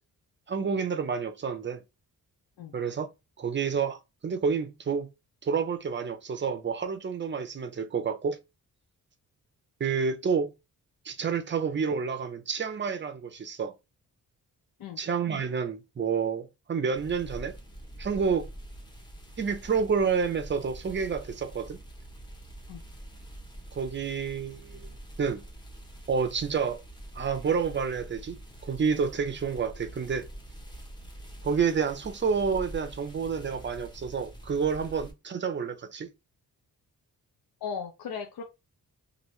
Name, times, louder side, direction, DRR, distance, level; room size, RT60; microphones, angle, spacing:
voice 1, 0.5-1.8 2.7-3.1 3.4-5.1 5.4-8.4 9.8-10.5 11.0-13.7 15.0-17.5 18.0-18.5 19.4-21.8 23.7-25.4 26.1-26.8 27.1-28.4 28.6-30.3 31.4-36.1, right 6 dB, 35° right, 0.5 m, -29 dB
sound 1, 16.9-35.1, right 1 dB, 10° left, 0.7 m, -45 dB
voice 2, 37.6-38.4, left 6 dB, 80° left, 0.6 m, -36 dB
2.9 x 2.6 x 3.1 m
wide cardioid pair, 140°, 36 cm